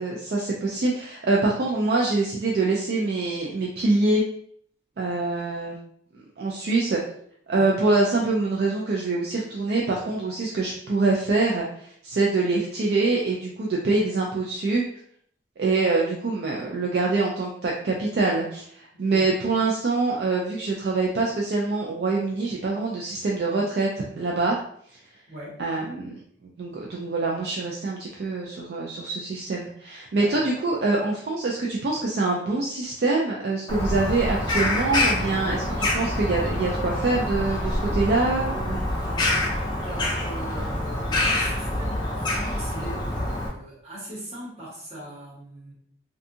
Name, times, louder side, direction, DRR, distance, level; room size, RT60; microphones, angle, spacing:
voice 1, 0.0-4.2 5.0-5.8 6.4-7.0 7.5-14.8 15.6-24.6 25.6-26.2 26.6-38.9, right 3 dB, 60° right, -2 dB, 0.4 m, -25 dB
voice 2, 18.9-19.3 25.3-25.6 30.2-30.5 39.0-39.4 39.8-45.7, right 1 dB, 35° right, -6 dB, 1.0 m, -40 dB
Bird vocalization bird call bird song, 33.7-43.5, left 1 dB, 25° left, 0.5 m, -26 dB
2.6 x 2.3 x 2.6 m, 0.64 s
head